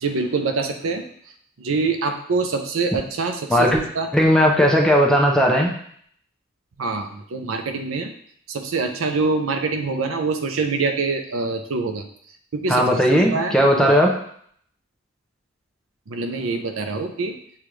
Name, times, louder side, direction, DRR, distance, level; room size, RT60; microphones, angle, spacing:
voice 1, 0.0-1.0 1.6-4.1 6.8-8.1 8.5-12.0 12.5-13.9 16.1-17.4, right 4 dB, 85° right, 6 dB, 0.5 m, -25 dB
voice 2, 3.5-3.8 4.1-5.7 12.7-14.1, equal, 5° left, 0 dB, 0.5 m, -17 dB
6.8 x 2.4 x 3.1 m, 0.64 s
head